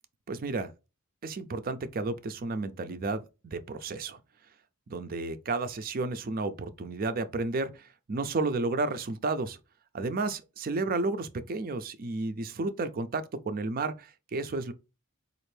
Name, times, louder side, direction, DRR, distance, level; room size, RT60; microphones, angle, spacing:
voice 1, 0.3-0.7 1.2-4.2 4.9-9.6 9.9-14.7, right 3 dB, 40° right, 0.4 m, -32 dB
4.2 x 2.5 x 3.2 m
head